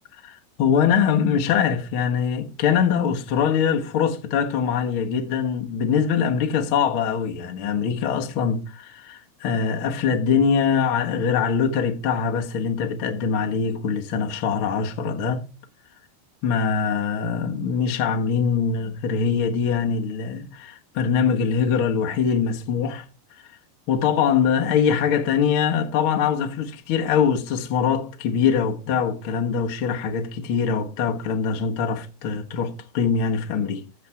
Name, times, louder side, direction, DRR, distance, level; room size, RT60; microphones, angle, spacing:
voice 1, 0.2-15.4 16.4-23.0 23.4-23.5 23.9-33.8, left 6 dB, 90° left, 1.1 m, -23 dB
15.0 x 5.2 x 5.8 m
omnidirectional pair, 4.8 m